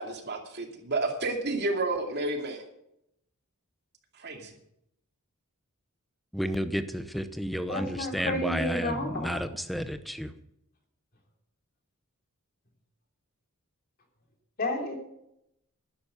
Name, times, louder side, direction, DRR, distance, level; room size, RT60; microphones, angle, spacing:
voice 1, 0.0-2.6 4.2-4.5, right 2 dB, 50° right, 3 dB, 2.5 m, -31 dB
voice 2, 6.3-10.3, equal, ahead, 10 dB, 0.8 m, -32 dB
voice 3, 7.7-9.4 14.6-14.9, left 1 dB, 45° left, 2 dB, 3.3 m, -31 dB
12.0 x 10.5 x 6.7 m, 0.79 s
head